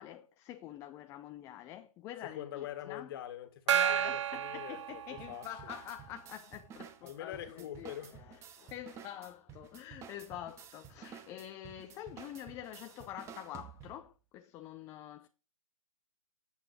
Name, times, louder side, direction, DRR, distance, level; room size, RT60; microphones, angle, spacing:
voice 1, 0.0-3.1 3.7-15.3, left 12 dB, 15° left, 0.5 m, -46 dB
voice 2, 2.2-5.7 7.0-8.2 8.6-8.7, left 11 dB, 40° left, 1.8 m, -44 dB
Gong, 3.7-5.7, right 10 dB, 55° right, 0.4 m, -32 dB
sound 1, 5.2-14.1, right 8 dB, 15° right, 1.0 m, -52 dB
9.2 x 8.2 x 4.9 m
hypercardioid pair, 140°, 18 cm